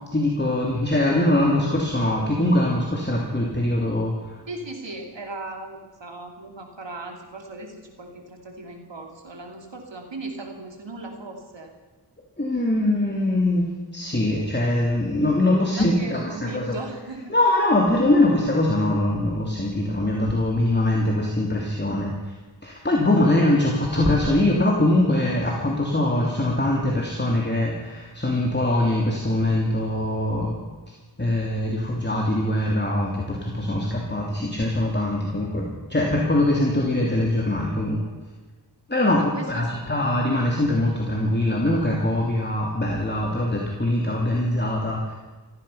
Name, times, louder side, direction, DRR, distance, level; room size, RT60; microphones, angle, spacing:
voice 1, 0.1-4.4 12.4-16.8 17.3-22.3 22.6-30.6 31.2-38.1 38.9-45.1, left 1 dB, 25° left, -2 dB, 3.0 m, -22 dB
voice 2, 4.5-11.7 15.7-17.3 39.1-39.7, right 2 dB, 80° right, 3 dB, 3.0 m, -37 dB
15.5 x 15.0 x 5.7 m, 1.3 s
wide cardioid pair, 45°, 43 cm